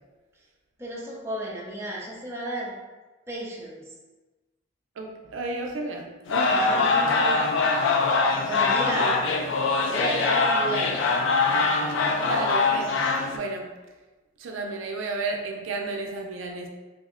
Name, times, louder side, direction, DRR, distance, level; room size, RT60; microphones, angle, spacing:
voice 1, 0.8-2.7 3.3-3.8 6.5-7.5 8.5-9.1 9.8-11.3, right 1 dB, 15° right, -5 dB, 0.5 m, -33 dB
voice 2, 5.0-6.6 7.0-7.5 8.7-9.2 12.2-12.9 13.3-13.7 14.4-16.7, right 3 dB, 85° right, 1 dB, 0.5 m, -32 dB
sound 1, 6.3-13.4, left 3 dB, 75° left, 0.4 m, -23 dB
3.5 x 2.0 x 3.6 m, 1.2 s
head